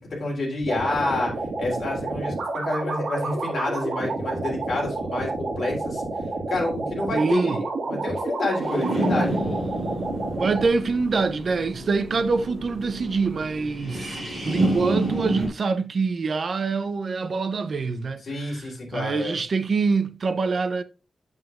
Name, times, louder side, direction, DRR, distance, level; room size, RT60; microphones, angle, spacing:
voice 1, 0.2-6.0 6.5-9.7 18.3-19.4, left 2 dB, 50° left, 3.2 m, -29 dB
sound 1, 0.6-10.7, right 3 dB, 70° right, 2.0 m, -29 dB
voice 2, 7.1-7.6 10.4-18.7 18.9-20.8, right 4 dB, 50° right, 0.6 m, -25 dB
sound 2, 8.6-15.5, right 1 dB, 15° right, 3.8 m, -29 dB
7.8 x 7.3 x 2.4 m
wide cardioid pair, 175°, 0 cm